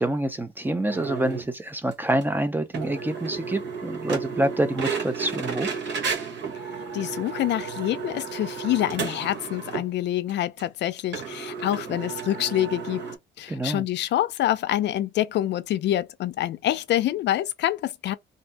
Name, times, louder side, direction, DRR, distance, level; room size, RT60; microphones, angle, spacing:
voice 1, 0.0-5.7 13.5-13.8, right 1 dB, 10° right, 0.4 m, -27 dB
sound 1, 0.9-1.5 1.9-2.0 2.2-2.3 2.7-9.9 10.3-10.4 10.6-10.7 11.1-13.2, right 5 dB, 65° right, 1.1 m, -33 dB
voice 2, 6.9-13.0 13.4-18.1, left 13 dB, 65° left, 0.4 m, -26 dB
2.6 x 2.6 x 3.3 m
cardioid pair, 155°, 19 cm